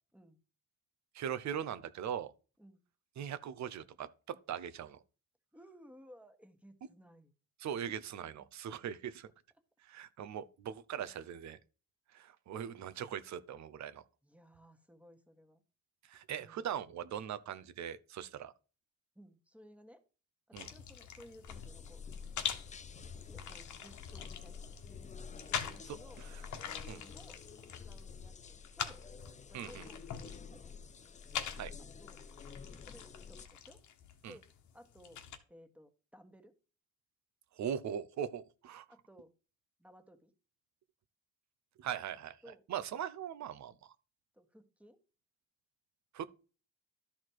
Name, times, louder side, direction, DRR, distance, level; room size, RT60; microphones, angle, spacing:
voice 1, 1.1-2.3 3.2-5.0 7.6-9.3 9.8-11.6 12.1-14.0 16.1-18.5 20.5-20.7 26.9-27.0 29.5-29.8 31.6-31.7 34.2-34.3 37.6-38.9 41.8-42.4 42.7-43.9 46.1-46.3, right 9 dB, 65° right, 0.8 m, -40 dB
voice 2, 5.5-7.3 7.9-8.0 8.4-8.5 14.2-15.6 16.4-16.7 19.1-20.0 20.5-22.0 23.2-24.8 25.5-26.2 26.6-27.4 27.8-29.0 29.5-30.8 31.8-32.2 32.8-33.8 34.3-34.5 34.7-35.2 35.5-36.5 38.9-39.3 39.8-40.3 42.4-42.6 44.3-45.0, equal, 5° right, 1.6 m, -58 dB
sound 1, 20.6-35.4, left 8 dB, 75° left, 1.3 m, -44 dB
sound 2, 21.5-33.5, left 5 dB, 25° left, 0.5 m, -50 dB
12.5 x 4.3 x 4.7 m
cardioid pair, 90°, 30 cm